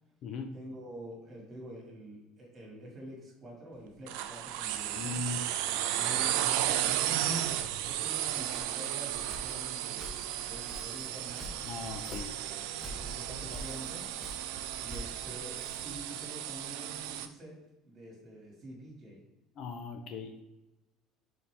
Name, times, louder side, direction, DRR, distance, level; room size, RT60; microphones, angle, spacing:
voice 1, 0.5-5.2 5.9-6.4 6.9-7.5 7.8-11.5 12.1-14.1 14.8-17.5 17.8-19.2, right 1 dB, 25° right, -2 dB, 2.1 m, -47 dB
sound 1, 4.1-17.3, right 12 dB, 90° right, 0.4 m, -34 dB
voice 2, 4.9-5.4 11.7-12.3 19.6-20.4, left 5 dB, 45° left, 6 dB, 0.5 m, -38 dB
Walk footsteps, 8.1-16.1, equal, ahead, 0.7 m, -48 dB
6.9 x 4.1 x 3.4 m, 1.0 s
cardioid pair, 170°, 0 cm